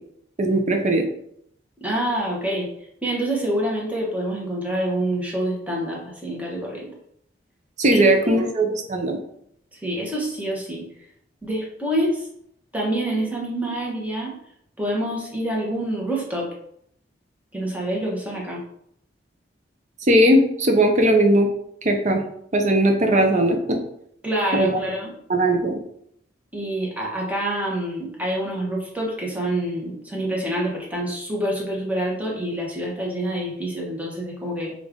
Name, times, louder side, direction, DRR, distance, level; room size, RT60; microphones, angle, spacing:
voice 1, 0.4-1.0 7.8-9.2 20.1-21.5 21.8-22.2 22.5-23.8 24.5-24.8 25.3-25.8, right 1 dB, 40° right, 3 dB, 0.6 m, -18 dB
voice 2, 1.8-2.7 3.0-6.9 7.9-8.4 9.7-10.8 11.4-12.3 12.7-14.3 14.8-16.5 17.5-18.6 24.2-25.1 26.5-34.7, right 1 dB, 10° right, -3 dB, 1.1 m, -26 dB
5.2 x 2.5 x 3.6 m, 0.71 s
head